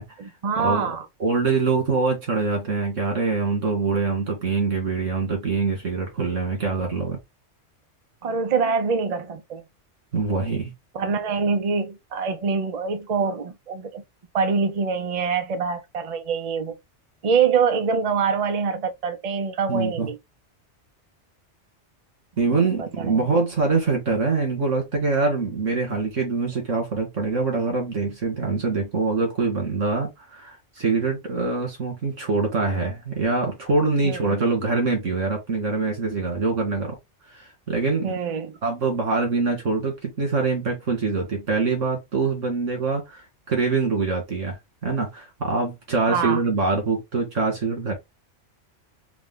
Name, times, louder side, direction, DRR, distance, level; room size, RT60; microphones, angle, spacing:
voice 1, 0.2-1.1 8.2-9.6 10.9-14.0 14.3-16.8 17.2-20.2 22.8-23.3 34.0-34.4 38.0-38.6 46.1-46.4, right 5 dB, 40° right, 0.6 m, -25 dB
voice 2, 1.2-7.2 10.1-10.7 19.7-20.1 22.4-37.0 37.3-38.2 38.6-43.2 43.5-47.9, right 4 dB, 85° right, 2.2 m, -24 dB
4.8 x 2.3 x 3.8 m
omnidirectional pair, 1.2 m